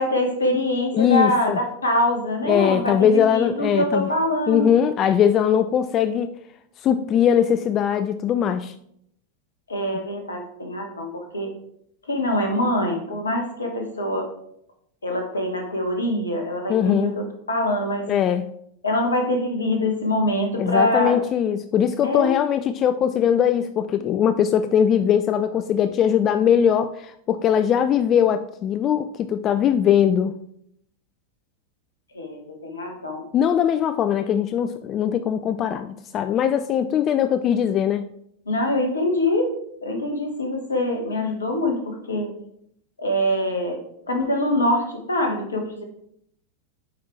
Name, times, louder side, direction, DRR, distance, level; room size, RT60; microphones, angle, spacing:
voice 1, 0.0-4.7 9.7-11.5 12.0-14.3 15.0-18.1 18.8-21.1 22.0-22.3 32.1-33.2 38.5-42.3 43.0-43.8 44.1-45.8, left 1 dB, 75° left, 3 dB, 1.5 m, -24 dB
voice 2, 0.9-1.6 2.5-4.1 4.5-6.3 6.8-8.7 16.7-17.2 18.1-18.5 20.6-30.4 33.3-38.1, left 9 dB, 30° left, 10 dB, 0.3 m, -20 dB
8.2 x 5.0 x 3.3 m, 0.73 s
figure-of-eight pair, 90°, 0 cm